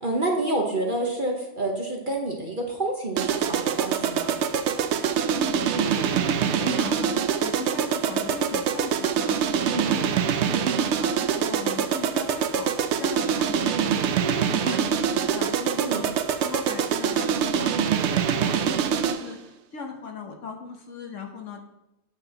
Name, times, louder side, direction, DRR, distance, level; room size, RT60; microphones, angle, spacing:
voice 1, 0.0-4.4 9.6-9.9 15.8-16.0, right 2 dB, 40° right, 0 dB, 1.0 m, -28 dB
sound 1, 3.2-19.3, right 7 dB, 70° right, 0.6 m, -25 dB
voice 2, 5.3-16.0 16.4-21.7, left 4 dB, 55° left, 3 dB, 1.2 m, -37 dB
8.9 x 7.7 x 2.9 m, 0.91 s
omnidirectional pair, 1.6 m